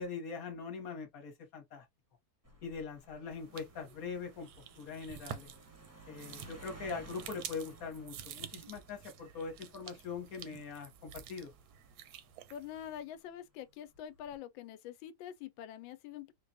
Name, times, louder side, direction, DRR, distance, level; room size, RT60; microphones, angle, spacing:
voice 1, 0.0-1.8 2.6-4.5 4.8-5.5 6.1-11.5, left 5 dB, 55° left, 1.3 m, -42 dB
sound 1, 2.4-13.2 13.9-14.4, right 2 dB, 20° right, 0.4 m, -57 dB
sound 2, 3.3-13.0, right 10 dB, 75° right, 1.0 m, -50 dB
voice 2, 12.5-16.3, left 10 dB, 90° left, 1.3 m, -45 dB
4.6 x 2.2 x 2.6 m
omnidirectional pair, 2.0 m